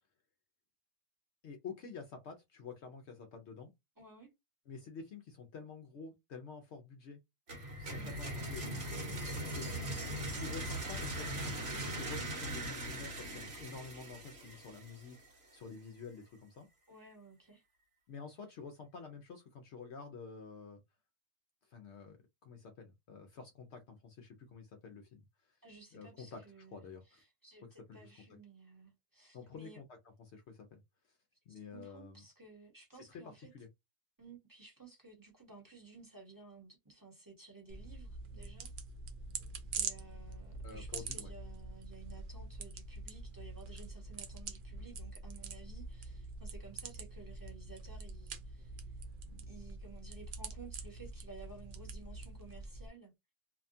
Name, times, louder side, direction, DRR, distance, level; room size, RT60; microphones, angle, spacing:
voice 1, 1.4-3.7 4.7-7.2 7.8-8.8 9.5-9.7 10.4-16.7 18.1-20.8 21.6-22.2 22.4-25.6 25.9-27.2 27.9-28.1 29.3-29.8 30.2-30.8 31.1-31.2 31.5-32.2 33.1-33.7 40.6-41.3, left 5 dB, 65° left, 0.7 m, -49 dB
voice 2, 4.0-4.3 7.9-8.2 16.9-17.6 25.6-26.8 27.1-29.8 31.5-33.5 34.2-38.7 39.7-48.8 49.5-53.1, right 4 dB, 15° right, 0.9 m, -55 dB
sound 1, 7.5-15.3, right 1 dB, 50° right, 1.2 m, -40 dB
sound 2, 37.7-52.9, right 4 dB, 70° right, 0.5 m, -45 dB
2.8 x 2.2 x 2.5 m
omnidirectional pair, 1.4 m